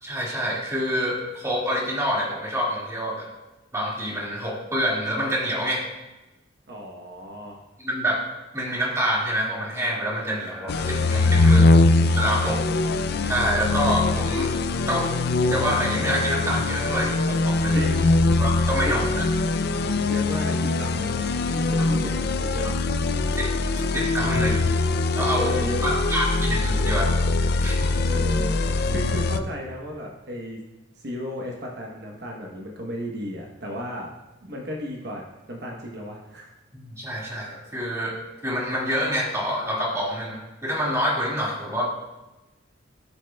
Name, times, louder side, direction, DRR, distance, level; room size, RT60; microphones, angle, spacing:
voice 1, 0.0-3.3 3.7-5.8 7.8-8.2 8.5-11.6 12.1-12.6 13.2-14.5 14.9-15.1 15.4-17.9 18.4-19.2 21.8-21.9 23.2-23.5 23.9-24.6 25.2-25.5 25.8-27.1 27.6-27.9 36.7-41.9, equal, 15° right, -4 dB, 2.1 m, -27 dB
voice 2, 6.7-7.6 11.5-11.6 17.7-18.1 18.8-19.1 20.1-21.2 21.5-22.8 25.3-26.0 28.0-30.6 31.0-34.1 34.4-36.5, left 1 dB, 60° right, -1 dB, 1.1 m, -34 dB
sound 1, 10.7-29.4, left 3 dB, 55° left, 0.4 m, -22 dB
16.0 x 6.5 x 2.3 m, 1.0 s
head